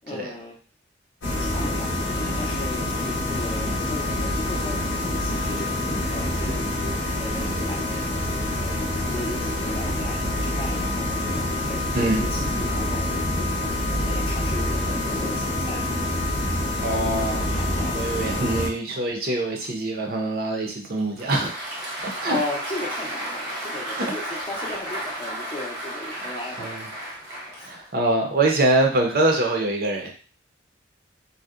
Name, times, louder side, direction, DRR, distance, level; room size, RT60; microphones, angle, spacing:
voice 1, 0.0-0.5 1.4-6.6 7.1-8.0 8.6-13.1 14.1-15.9 17.3-18.7 21.9-26.9 27.6-27.7, left 2 dB, 30° left, -1 dB, 0.5 m, -36 dB
sound 1, 1.2-18.7, left 1 dB, 85° left, 0.6 m, -26 dB
voice 2, 16.8-21.5 22.0-22.4 24.0-24.1 26.1-26.8 27.6-30.1, right 2 dB, 50° right, 1 dB, 0.5 m, -24 dB
Applause, 21.0-28.1, right 1 dB, 85° right, 0.9 m, -33 dB
2.6 x 2.0 x 2.3 m, 0.38 s
head